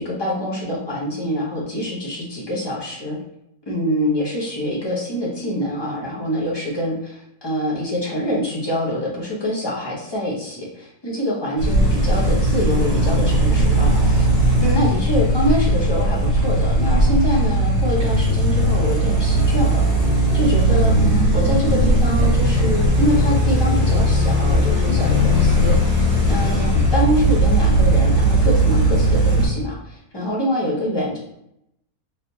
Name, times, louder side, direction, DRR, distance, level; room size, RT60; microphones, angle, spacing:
voice 1, 0.0-3.2 3.7-14.3 14.6-31.2, equal, 25° left, -5 dB, 0.6 m, -25 dB
sound 1, 11.6-29.5, right 1 dB, 30° right, 1.1 m, -18 dB
3.3 x 2.8 x 2.7 m, 0.79 s
omnidirectional pair, 1.6 m